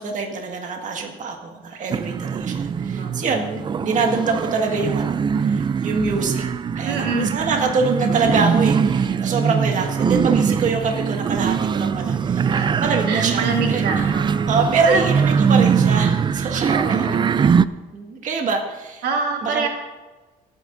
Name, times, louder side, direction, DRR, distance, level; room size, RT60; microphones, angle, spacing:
voice 1, 0.0-6.5 6.8-12.5 12.8-14.0 14.5-17.6 17.9-19.0 19.4-19.7, right 4 dB, 50° right, 2 dB, 1.8 m, -25 dB
sound 1, 1.9-17.7, right 6 dB, 25° right, 0.4 m, -21 dB
voice 2, 6.8-7.3 12.5-12.8 13.1-15.0 16.7-17.3 19.0-19.7, right 4 dB, 70° right, 2 dB, 1.8 m, -26 dB
28.0 x 9.4 x 2.6 m, 1.2 s
cardioid pair, 110°, 17 cm